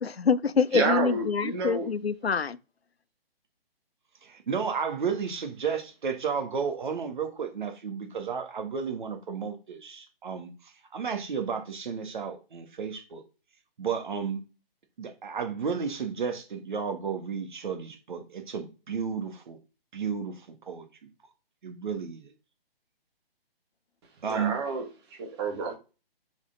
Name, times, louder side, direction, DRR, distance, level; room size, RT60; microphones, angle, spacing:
voice 1, 0.0-2.6, left 5 dB, 85° left, 0.6 m, -26 dB
voice 2, 0.7-1.9 24.3-24.9 25.2-25.8, right 4 dB, 25° right, 1.9 m, -29 dB
voice 3, 4.2-10.5 10.9-13.2 13.8-14.4 15.0-19.6 19.9-20.9 21.6-22.3 24.2-24.5, right 6 dB, 50° right, 1.8 m, -32 dB
7.1 x 4.6 x 3.9 m
figure-of-eight pair, 140°, 30 cm